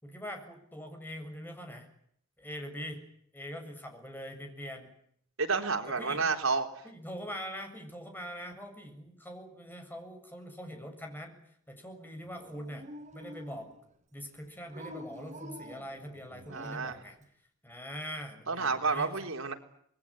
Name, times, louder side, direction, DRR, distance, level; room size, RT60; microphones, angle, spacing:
voice 1, 0.0-1.9 2.4-3.0 3.3-4.9 5.9-6.3 6.8-11.4 11.7-12.9 13.1-13.7 14.1-17.2 17.6-19.1, equal, 10° left, 5 dB, 7.2 m, -43 dB
voice 2, 5.4-6.7 16.5-17.0 18.5-19.5, right 4 dB, 85° right, 4 dB, 4.1 m, -30 dB
Dog, 12.4-13.9 14.7-17.0, equal, 35° right, 4.0 m, -47 dB
27.0 x 21.5 x 9.1 m, 0.67 s
head